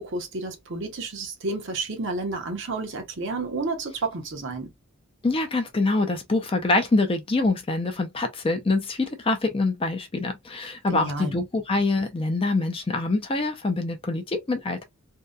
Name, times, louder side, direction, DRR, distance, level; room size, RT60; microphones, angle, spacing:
voice 1, 0.0-4.7 10.9-11.3, right 3 dB, 55° right, 0.8 m, -31 dB
voice 2, 5.2-14.8, left 2 dB, 25° left, 0.4 m, -25 dB
2.7 x 2.2 x 2.2 m
head